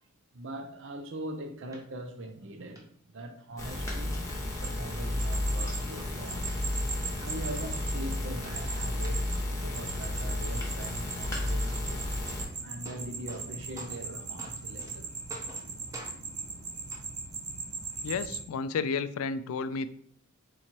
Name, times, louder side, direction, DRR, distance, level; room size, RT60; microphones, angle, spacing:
voice 1, 0.3-6.5 7.2-12.0 12.6-15.1, right 1 dB, 60° right, 0.6 m, -42 dB
sound 1, 1.7-1.8 2.3-2.4 2.8-2.9 3.3-3.8 4.3-4.9 5.3-5.4 5.8-6.6 7.1-7.2 7.4-8.1 8.4-9.4 9.7-10.3 12.3-12.4 12.6-13.5 13.8-14.1 14.4-14.9 15.3-15.7 15.9-16.2 16.9-17.0 17.9-18.0, right 1 dB, 15° right, 0.8 m, -48 dB
sound 2, 3.6-12.4, left 1 dB, 15° left, 1.0 m, -32 dB
sound 3, 4.6-18.4, right 4 dB, 85° right, 0.9 m, -40 dB
voice 2, 18.0-19.9, left 5 dB, 75° left, 0.3 m, -32 dB
3.9 x 2.9 x 4.4 m
head